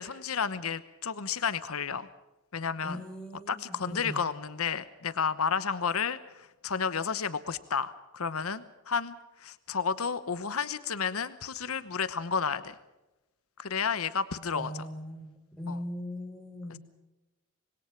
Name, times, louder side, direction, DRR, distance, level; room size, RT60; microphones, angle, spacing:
voice 1, 0.0-2.1 2.5-3.0 3.5-9.2 9.4-12.7 13.6-14.9 15.7-15.8 16.7-16.8, left 6 dB, 85° left, 13 dB, 1.0 m, -32 dB
voice 2, 2.8-4.2 14.5-16.8, equal, 5° left, 2 dB, 4.3 m, -39 dB
26.0 x 21.0 x 5.9 m, 1.0 s
head